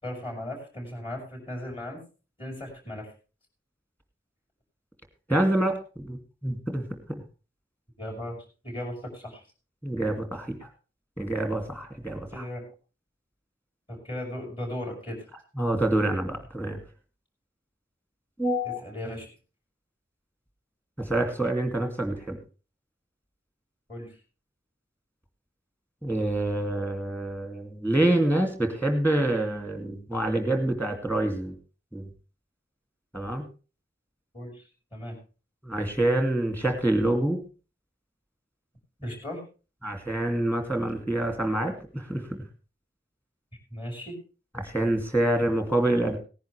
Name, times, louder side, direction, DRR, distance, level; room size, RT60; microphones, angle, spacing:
voice 1, 0.0-2.0 2.4-3.1 8.0-8.4 8.6-9.4 12.3-12.6 13.9-15.2 18.6-19.3 23.9-24.1 34.3-34.6 34.9-35.2 39.0-39.4 43.7-44.2, left 1 dB, 30° left, 0 dB, 5.7 m, -36 dB
voice 2, 5.3-6.9 9.8-10.6 11.2-12.4 15.6-16.8 18.4-18.8 21.0-22.4 26.0-31.5 31.9-32.1 33.1-33.4 35.6-37.4 39.8-42.4 44.5-46.2, right 1 dB, 10° left, 6 dB, 2.4 m, -26 dB
18.5 x 10.5 x 3.4 m, 0.34 s
head